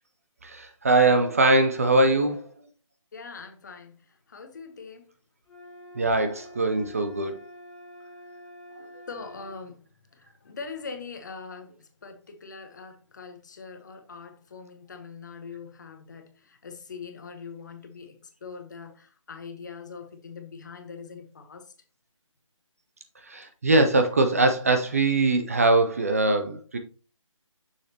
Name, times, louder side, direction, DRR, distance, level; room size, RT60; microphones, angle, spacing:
voice 1, 0.4-2.5 6.0-7.4 23.3-26.8, right 2 dB, 30° right, 0.5 m, -22 dB
voice 2, 3.1-5.1 9.1-9.9 10.1-21.7, left 5 dB, 35° left, 0.9 m, -42 dB
sound 1, 5.5-9.6, equal, 5° left, 1.2 m, -47 dB
6.5 x 6.3 x 2.8 m
figure-of-eight pair, 165°, 17 cm